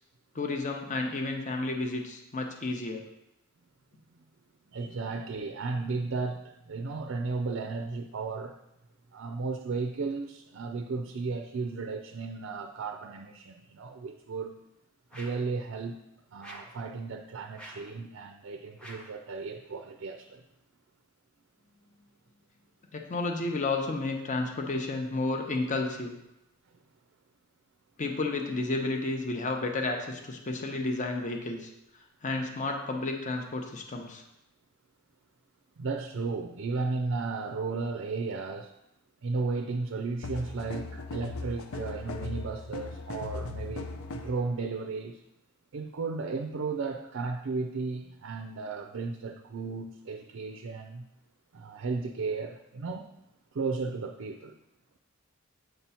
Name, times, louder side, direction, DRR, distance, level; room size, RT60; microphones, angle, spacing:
voice 1, 0.3-3.1 22.9-26.1 28.0-31.7 32.2-34.2, left 2 dB, 35° left, 3 dB, 0.7 m, -31 dB
voice 2, 4.7-8.6 9.1-14.6 15.1-16.0 16.3-20.4 26.7-26.8 35.8-38.7 39.2-45.2 45.7-51.0 51.5-53.1 53.5-54.5, right 4 dB, 65° right, 4 dB, 0.4 m, -34 dB
sound 1, 15.1-15.5 16.4-16.8 17.6-17.9 18.8-19.2, equal, 5° left, 0.8 m, -47 dB
sound 2, 40.2-44.4, left 3 dB, 85° left, 0.6 m, -38 dB
7.8 x 3.0 x 5.5 m, 0.86 s
head